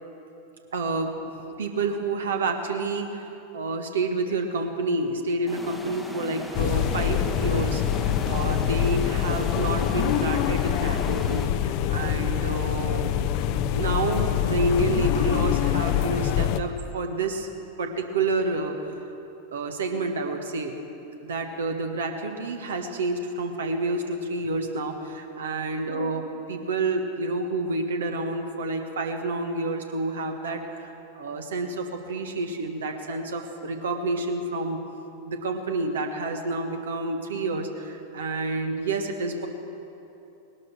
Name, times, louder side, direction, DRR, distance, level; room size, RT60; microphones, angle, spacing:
voice 1, 0.7-13.3 13.7-17.5 17.8-18.8 19.5-20.8 21.2-34.8 35.2-39.5, right 2 dB, 65° right, 5 dB, 1.5 m, -29 dB
sound 1, 5.5-11.5, left 1 dB, ahead, 1.0 m, -38 dB
sound 2, 6.5-16.6, left 10 dB, 45° left, 0.6 m, -25 dB
19.0 x 12.0 x 6.2 m, 2.9 s
figure-of-eight pair, 90°, 0 cm